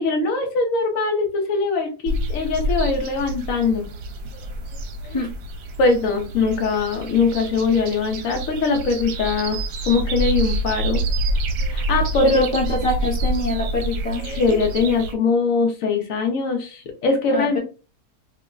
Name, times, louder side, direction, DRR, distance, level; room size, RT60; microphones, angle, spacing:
voice 1, 0.0-3.9 5.8-9.6 9.9-11.0 11.7-12.4 14.2-17.6, left 4 dB, 65° left, 2 dB, 0.9 m, -21 dB
sound 1, 2.1-15.1, right 1 dB, 70° right, 1.1 m, -27 dB
voice 2, 12.2-14.6 14.9-15.0 17.3-17.6, left 1 dB, 35° left, -4 dB, 0.5 m, -25 dB
3.0 x 2.0 x 3.5 m, 0.34 s
omnidirectional pair, 1.8 m